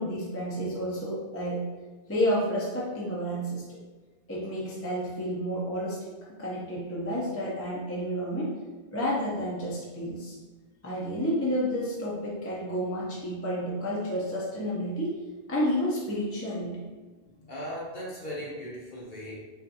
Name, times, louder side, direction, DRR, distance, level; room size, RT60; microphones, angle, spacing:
voice 1, 0.0-1.7 2.1-3.8 4.3-6.1 6.4-8.6 8.9-10.4 10.8-15.2 15.5-16.7, equal, 15° left, -6 dB, 0.7 m, -30 dB
voice 2, 17.4-19.4, equal, 50° left, -5 dB, 1.1 m, -38 dB
3.9 x 3.2 x 2.8 m, 1.3 s
omnidirectional pair, 1.1 m